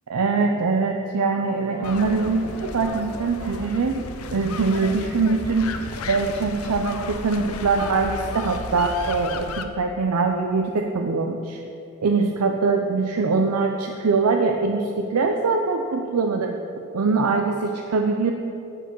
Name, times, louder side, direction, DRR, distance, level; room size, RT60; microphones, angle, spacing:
voice 1, 0.1-4.0 4.3-5.8 6.1-11.6 12.0-16.5 16.9-18.3, right 4 dB, 80° right, 3 dB, 0.6 m, -23 dB
Guitar, 1.4-7.7, right 2 dB, 35° right, 0.9 m, -44 dB
sound 1, 1.8-9.7, left 4 dB, 70° left, 0.6 m, -34 dB
14.0 x 4.7 x 6.1 m, 2.9 s
head